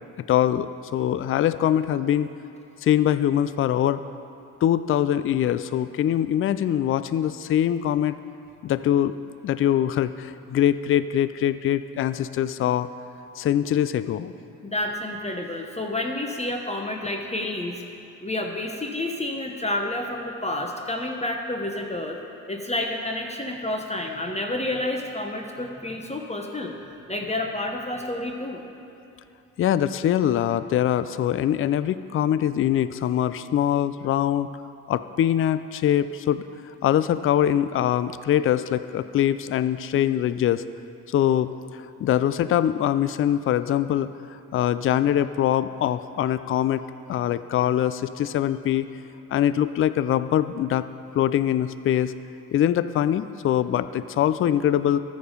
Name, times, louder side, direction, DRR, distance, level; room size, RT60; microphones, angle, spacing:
voice 1, 0.3-2.3 2.8-4.0 4.6-8.1 8.6-9.2 9.4-12.9 13.4-14.3 29.6-34.5 34.9-36.4 36.8-40.6 41.1-41.5 42.0-44.1 44.5-46.8 47.1-48.9 49.3-50.9 51.1-52.1 52.5-55.0, left 11 dB, 35° left, 14 dB, 0.4 m, -23 dB
voice 2, 14.6-17.8 18.2-22.2 22.5-26.7 27.1-28.6, left 1 dB, 15° left, 2 dB, 1.1 m, -29 dB
14.0 x 5.2 x 5.3 m, 2.8 s
hypercardioid pair, 55°, 38 cm